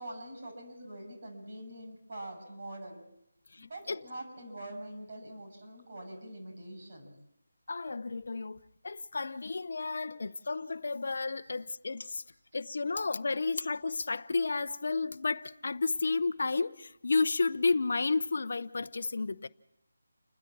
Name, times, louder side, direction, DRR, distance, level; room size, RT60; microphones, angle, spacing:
voice 1, 0.0-3.0 3.6-7.1 10.2-10.3 11.4-11.5, right 1 dB, 40° right, 7.8 m, -44 dB
voice 2, 3.5-4.0 7.7-8.6 8.8-12.2 12.5-19.5, left 3 dB, 55° left, 0.9 m, -32 dB
29.5 x 10.0 x 8.6 m
figure-of-eight pair, 170°, 0 cm